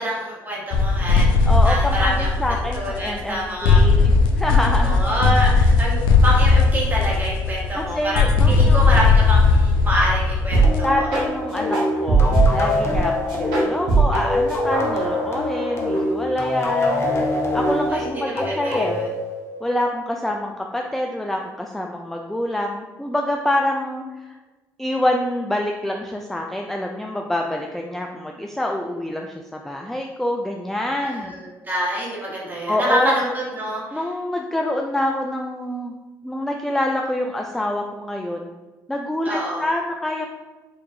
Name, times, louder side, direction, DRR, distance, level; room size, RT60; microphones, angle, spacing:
voice 1, 0.0-3.8 4.8-11.1 17.9-19.1 31.0-34.0 39.2-39.7, equal, 25° right, -4 dB, 1.4 m, -26 dB
sound 1, 0.7-3.4 3.6-10.9, left 4 dB, 80° left, 0.5 m, -17 dB
voice 2, 1.4-5.0 7.7-9.0 10.8-17.1 17.5-19.0 19.6-24.4 24.8-31.4 32.7-33.2 33.9-35.9 36.2-38.5 38.9-40.3, left 1 dB, 5° left, 1 dB, 0.3 m, -26 dB
sound 2, 10.5-10.7 11.1-11.2 11.7-13.0 13.3-14.2 14.5-16.0, right 4 dB, 70° right, 1.3 m, -20 dB
sound 3, 10.6-19.9, left 2 dB, 35° left, 0.8 m, -24 dB
4.5 x 2.5 x 2.6 m, 1.2 s
supercardioid pair, 75°, 8 cm